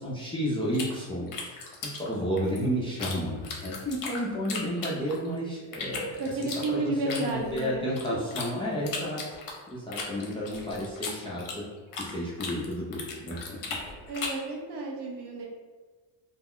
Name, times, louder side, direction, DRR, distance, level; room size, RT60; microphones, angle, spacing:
voice 1, 0.0-1.6 1.8-6.4 6.7-9.4 9.7-11.6 12.0-13.8, equal, 10° left, -6 dB, 0.3 m, -32 dB
sound 1, 0.7-3.2 3.4-5.3 5.7-8.5 8.9-12.1 12.4-14.5, left 4 dB, 45° left, 0.7 m, -37 dB
voice 2, 6.2-8.2 14.1-15.5, right 2 dB, 55° right, 0 dB, 0.7 m, -32 dB
2.3 x 2.1 x 3.5 m, 1.4 s
cardioid pair, 110°, 47 cm